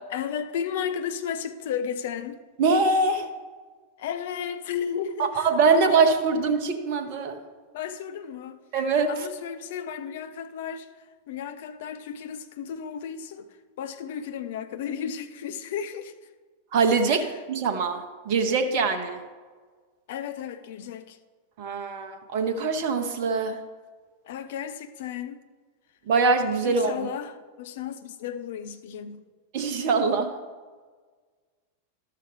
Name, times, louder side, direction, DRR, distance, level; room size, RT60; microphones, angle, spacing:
voice 1, 0.1-2.4 4.0-6.1 7.7-8.6 9.1-10.9 11.3-13.5 13.8-16.1 17.1-17.4 20.1-21.2 24.3-25.4 26.6-29.2, left 8 dB, 55° left, 0.5 m, -34 dB
voice 2, 2.6-3.3 5.2-7.4 8.7-9.1 16.7-19.2 21.6-23.6 26.1-27.1 29.5-30.3, right 4 dB, 45° right, 0.8 m, -23 dB
12.0 x 6.7 x 3.3 m
figure-of-eight pair, 90°, 0 cm